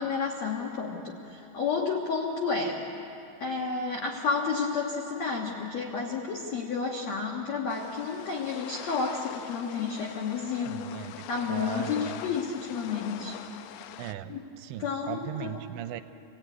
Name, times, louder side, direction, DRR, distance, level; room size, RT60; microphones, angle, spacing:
voice 1, 0.0-2.8 3.4-10.8 11.3-13.3 14.3-14.4 14.8-15.6, left 5 dB, 75° left, 0 dB, 1.6 m, -31 dB
sound 1, 7.7-14.1, left 12 dB, 90° left, 3.3 m, -43 dB
voice 2, 10.5-12.2 14.0-16.0, right 12 dB, 80° right, 10 dB, 2.8 m, -39 dB
28.5 x 17.0 x 9.2 m, 3.0 s
omnidirectional pair, 5.4 m